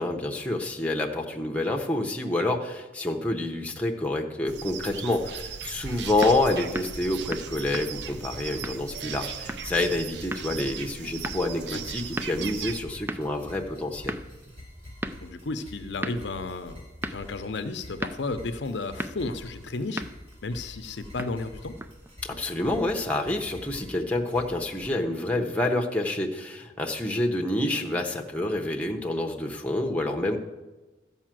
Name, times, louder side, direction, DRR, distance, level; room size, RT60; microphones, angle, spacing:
voice 1, 0.0-14.1 22.2-30.4, left 2 dB, 5° left, 2 dB, 0.9 m, -28 dB
sound 1, 4.5-12.8, right 7 dB, 65° right, 0.5 m, -38 dB
sound 2, 5.3-24.9, left 1 dB, 30° right, 4.4 m, -47 dB
sound 3, 5.7-22.2, right 1 dB, 10° right, 0.4 m, -40 dB
voice 2, 15.2-20.0 20.4-21.7, left 3 dB, 70° left, 9 dB, 0.7 m, -33 dB
13.0 x 5.5 x 7.6 m, 1.2 s
head